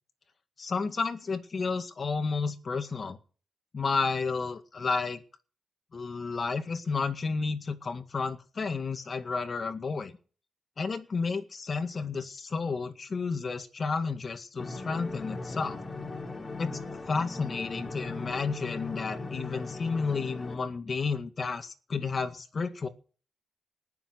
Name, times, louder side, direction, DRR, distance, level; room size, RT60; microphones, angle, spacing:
voice 1, 0.6-3.2 3.7-5.2 5.9-10.1 10.8-15.8 16.6-16.8 17.1-22.9, left 4 dB, 45° left, 9 dB, 2.0 m, -31 dB
sound 1, 14.6-20.6, left 3 dB, 30° left, 3.0 m, -38 dB
19.5 x 7.2 x 8.2 m, 0.40 s
cardioid pair, 75°, 0 cm